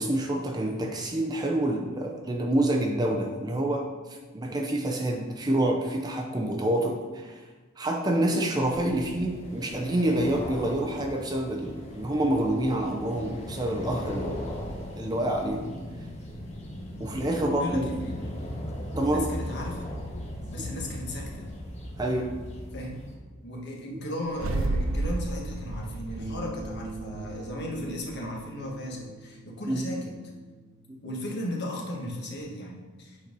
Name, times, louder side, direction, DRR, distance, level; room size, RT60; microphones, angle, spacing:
voice 1, 0.0-7.5 7.8-14.4 15.0-15.8 17.0-17.9 18.9-19.3 20.6-20.7 22.0-22.3 29.7-29.8 30.9-31.0, right 1 dB, 20° right, 1 dB, 0.6 m, -27 dB
sound 1, 8.6-23.2, equal, 30° left, 1.2 m, -38 dB
voice 2, 17.4-18.0 19.0-19.9 20.5-21.5 22.7-22.9 23.4-30.1 31.0-33.3, left 1 dB, 50° left, -1 dB, 1.5 m, -36 dB
sound 2, 24.3-28.6, right 2 dB, 65° right, 0.6 m, -32 dB
Bass guitar, 26.2-32.4, right 2 dB, 50° right, 1.4 m, -45 dB
8.5 x 4.5 x 5.3 m, 1.3 s
head